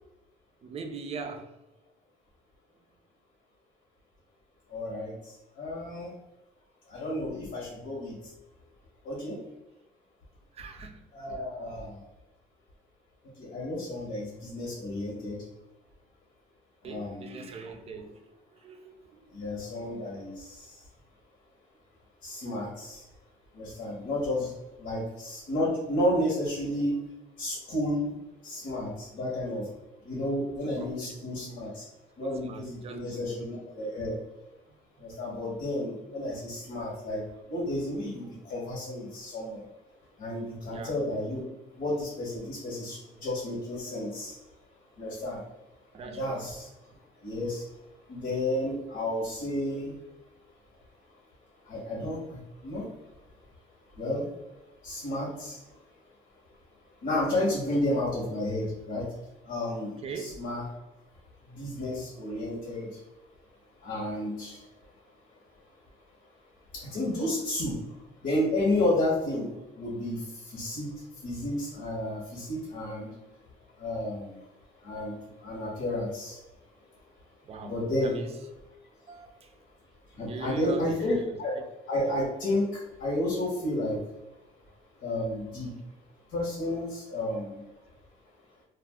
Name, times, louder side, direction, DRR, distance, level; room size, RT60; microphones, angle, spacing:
voice 1, 0.6-1.5 10.5-11.0 16.8-18.2 18.5-19.3 30.8-31.2 32.2-33.4 35.0-35.1 40.7-41.0 45.9-46.4 60.0-60.4 77.4-77.7 78.0-78.3 79.1-79.5 80.3-81.6, right 5 dB, 35° right, 5 dB, 0.5 m, -41 dB
voice 2, 4.7-6.1 6.9-8.1 9.0-9.4 11.1-12.0 13.4-15.4 16.8-17.5 19.3-20.8 22.2-23.0 23.5-24.5 24.8-26.9 27.4-28.1 28.4-29.7 30.0-31.8 32.2-34.2 35.0-37.2 37.5-39.6 40.2-41.4 41.8-44.3 45.0-45.4 46.0-46.7 47.2-47.6 48.1-49.9 51.7-52.8 54.0-54.3 54.8-55.6 57.0-59.1 59.4-60.6 61.5-63.0 63.8-64.6 66.7-67.8 68.2-69.5 69.8-70.9 71.2-73.1 73.8-74.4 74.8-75.1 75.4-76.4 77.6-78.2 80.2-81.6 81.9-84.0 85.0-85.8 86.3-87.6, left 1 dB, 70° left, -5 dB, 1.2 m, -31 dB
2.5 x 2.3 x 3.5 m, 0.97 s
cardioid pair, 110°, 17 cm